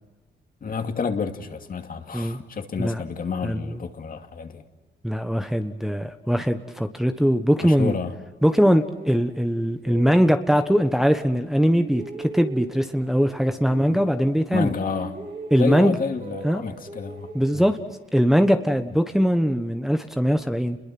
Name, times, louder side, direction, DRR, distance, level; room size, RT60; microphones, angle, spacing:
voice 1, 0.6-4.6 7.6-8.1 13.9-14.1 14.5-15.2 15.6-17.6, left 5 dB, 45° left, 2.5 m, -30 dB
voice 2, 3.4-3.7 5.0-7.9 8.4-14.7 15.5-16.0 16.4-16.6 17.3-17.8 18.1-20.8, equal, ahead, 1.2 m, -21 dB
sound 1, 8.5-11.3 11.6-14.5 14.8-18.3, right 4 dB, 55° right, 5.2 m, -39 dB
29.0 x 22.0 x 6.0 m
cardioid pair, 90°, 20 cm